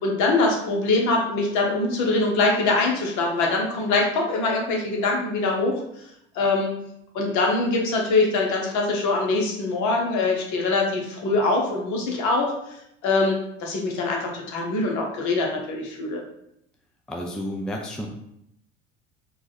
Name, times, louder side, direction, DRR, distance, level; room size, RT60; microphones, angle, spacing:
voice 1, 0.0-5.8 6.3-6.7 7.1-12.5 13.0-16.2, left 3 dB, 50° left, 0 dB, 1.3 m, -23 dB
voice 2, 17.1-18.1, equal, ahead, 1 dB, 0.5 m, -31 dB
4.6 x 2.5 x 4.0 m, 0.77 s
figure-of-eight pair, 70°, 37 cm